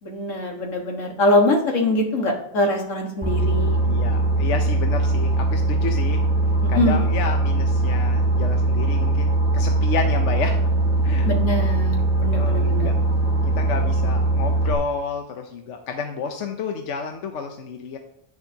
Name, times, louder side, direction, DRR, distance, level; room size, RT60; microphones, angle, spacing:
voice 1, 0.0-3.8 6.6-7.1 11.3-12.9, left 1 dB, 85° left, 1 dB, 2.1 m, -23 dB
Boat Water vehicle, 3.2-14.7, right 2 dB, 10° right, 1.7 m, -21 dB
voice 2, 3.9-6.2 6.7-10.7 11.0-11.3 12.2-13.0 13.6-18.0, left 5 dB, 70° left, 4 dB, 1.1 m, -30 dB
10.5 x 10.0 x 2.9 m, 0.75 s
omnidirectional pair, 1.3 m